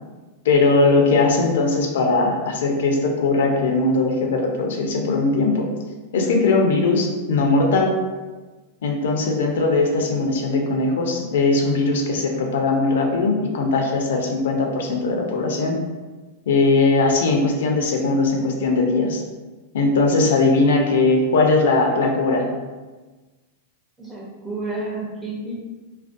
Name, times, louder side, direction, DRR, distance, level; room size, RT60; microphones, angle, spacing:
voice 1, 0.4-5.7 6.1-8.0 8.8-15.8 16.5-19.2 19.7-22.5, left 3 dB, 80° left, 1 dB, 0.4 m, -19 dB
voice 2, 24.0-25.6, right 2 dB, 5° right, -5 dB, 0.6 m, -30 dB
2.3 x 2.1 x 2.5 m, 1.3 s
supercardioid pair, 145°, 0 cm